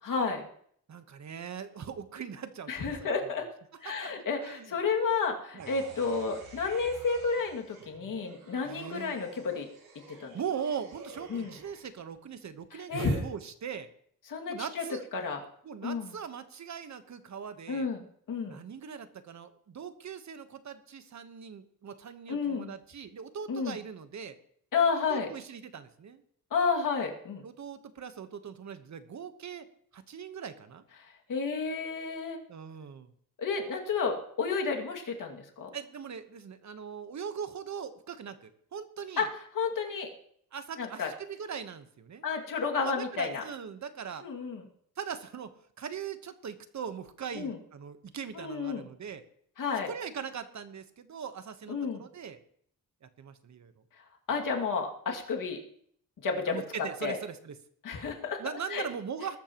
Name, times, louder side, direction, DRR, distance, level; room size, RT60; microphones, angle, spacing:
voice 1, 0.0-0.5 2.7-3.5 3.8-9.7 10.2-10.3 11.3-11.5 12.7-13.2 14.3-14.8 15.1-15.4 15.8-16.1 17.7-18.0 18.3-18.6 22.3-22.7 23.5-23.8 24.7-25.3 26.5-27.4 31.3-32.4 33.4-35.7 39.2-39.3 39.5-40.1 40.8-41.1 42.2-43.4 44.2-44.6 47.3-47.5 48.3-48.8 49.6-49.9 51.7-52.0 54.3-55.6 56.2-56.6 57.0-57.2 57.8-58.4 58.7-58.9, left 5 dB, 60° left, 1 dB, 2.4 m, -31 dB
voice 2, 0.9-3.1 3.8-4.1 4.4-4.7 5.5-5.7 8.6-9.2 10.3-13.9 14.5-15.1 15.6-17.9 18.5-24.4 25.1-26.2 27.4-29.7 29.9-30.8 32.5-33.1 35.7-39.3 40.5-42.3 42.8-44.2 45.0-45.5 45.8-49.2 49.8-52.4 53.0-53.7 56.5-57.5 58.4-59.4, right 7 dB, 50° right, 10 dB, 1.2 m, -40 dB
sound 1, 5.6-11.8 12.9-13.2, right 4 dB, 85° right, 6.5 m, -46 dB
20.5 x 12.5 x 3.0 m, 0.64 s
wide cardioid pair, 130°, 35 cm